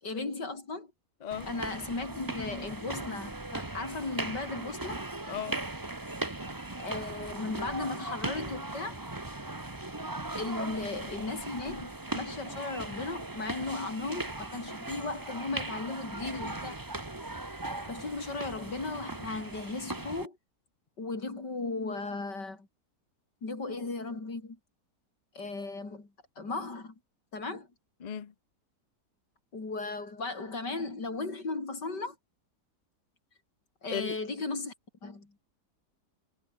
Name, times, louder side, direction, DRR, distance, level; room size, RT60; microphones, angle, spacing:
voice 1, 0.0-0.9 1.5-5.0 6.8-9.0 10.4-16.8 17.6-20.4 21.0-22.7 23.4-24.6 25.4-26.1 26.4-27.0 27.3-27.7 29.5-32.2 33.8-34.7 35.0-35.3, left 3 dB, 85° left, 5.3 m, -36 dB
sound 1, 1.3-20.3, right 2 dB, 15° right, 1.3 m, -38 dB
voice 2, 5.3-5.6 10.6-10.7 28.0-28.3 33.9-34.2, left 8 dB, 45° left, 0.5 m, -36 dB
omnidirectional pair, 1.8 m